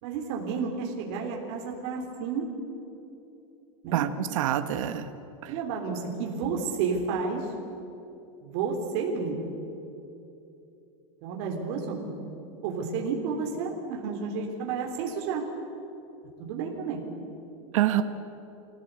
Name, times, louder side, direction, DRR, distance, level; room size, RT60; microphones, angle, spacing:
voice 1, 0.0-2.5 3.8-4.1 5.5-7.4 8.4-9.4 11.2-12.1 12.6-15.4 16.4-17.0, right 5 dB, 55° right, 0 dB, 3.6 m, -31 dB
voice 2, 3.9-5.1 5.4-5.5 17.7-18.0, right 12 dB, 80° right, 9 dB, 1.3 m, -26 dB
25.5 x 17.0 x 8.3 m, 2.9 s
supercardioid pair, 155°, 17 cm